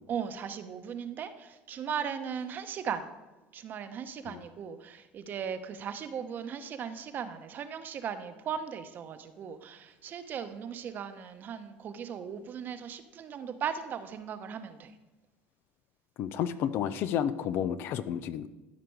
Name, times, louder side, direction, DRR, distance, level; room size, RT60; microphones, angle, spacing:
voice 1, 0.1-3.1 3.5-14.9, right 7 dB, 45° right, 9 dB, 0.9 m, -37 dB
voice 2, 16.2-18.5, left 9 dB, 60° left, 13 dB, 0.6 m, -31 dB
12.5 x 5.1 x 4.7 m, 1.1 s
supercardioid pair, 90°, 4 cm